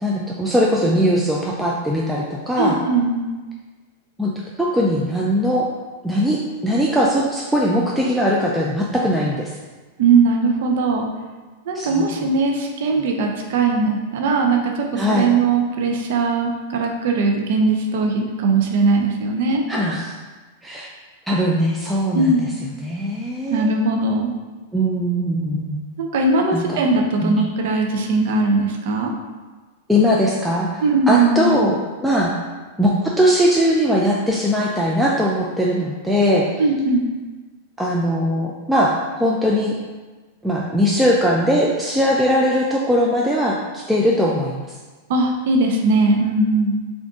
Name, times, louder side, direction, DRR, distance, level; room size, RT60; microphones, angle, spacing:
voice 1, 0.0-2.8 4.2-4.3 4.6-5.7 6.0-9.5 11.7-12.3 15.0-15.3 19.7-20.2 20.6-20.9 21.3-22.5 22.8-23.7 24.7-25.8 26.5-26.9 27.2-27.4 29.9-32.4 32.8-36.5 37.8-39.8 40.4-44.7, equal, ahead, -4 dB, 0.3 m, -20 dB
voice 2, 2.6-3.3 10.0-11.1 11.7-19.6 22.1-22.6 23.5-24.4 26.0-29.1 30.8-31.5 36.6-37.0 45.1-46.7, right 3 dB, 60° right, 2 dB, 0.5 m, -19 dB
3.7 x 2.5 x 3.5 m, 1.3 s
supercardioid pair, 150°, 0 cm